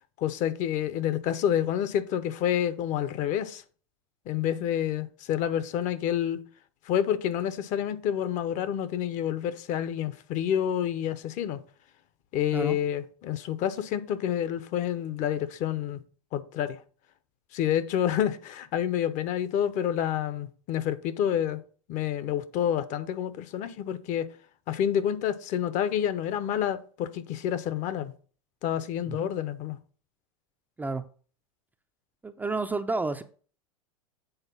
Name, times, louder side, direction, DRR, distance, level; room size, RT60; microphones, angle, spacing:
voice 1, 0.2-3.6 4.3-6.4 6.9-11.6 12.3-16.0 16.3-16.8 17.5-21.6 21.9-24.3 24.7-28.1 28.6-29.8, left 10 dB, 45° left, 0.8 m, -28 dB
voice 2, 32.2-33.2, right 3 dB, 10° right, 0.4 m, -30 dB
8.1 x 3.9 x 5.4 m
hypercardioid pair, 115°, 18 cm